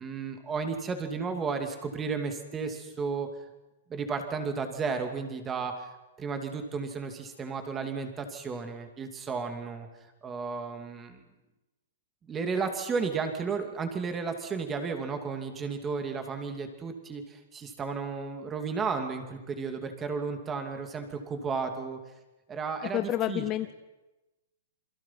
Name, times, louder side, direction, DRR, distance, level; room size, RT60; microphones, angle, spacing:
voice 1, 0.0-3.3 3.9-5.9 6.2-9.9 10.2-11.2 12.3-22.0 22.5-23.5, right 5 dB, 15° right, 6 dB, 2.6 m, -33 dB
voice 2, 22.9-23.7, left 13 dB, 25° left, 11 dB, 0.7 m, -29 dB
28.0 x 23.0 x 5.9 m, 1.0 s
hypercardioid pair, 160°, 0 cm